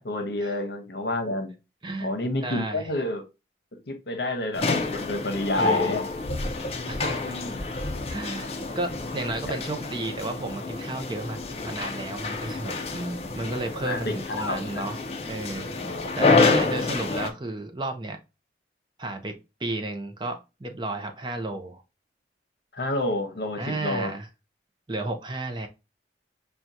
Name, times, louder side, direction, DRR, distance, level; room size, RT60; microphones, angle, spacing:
voice 1, 0.0-1.5 2.0-3.2 3.9-4.7 4.9-6.1 7.3-7.7 9.5-9.6 13.7-14.6 15.7-16.2 22.7-24.1, left 1 dB, 65° left, 6 dB, 0.9 m, -29 dB
voice 2, 2.4-2.9 5.6-6.0 6.9-7.4 8.1-15.0 15.3-15.8 16.1-18.2 19.0-21.8 23.6-24.3 24.9-25.7, right 2 dB, 25° right, 6 dB, 0.5 m, -33 dB
sound 1, 4.5-17.3, left 3 dB, 35° left, 0.5 m, -28 dB
5.8 x 2.3 x 2.6 m, 0.26 s
head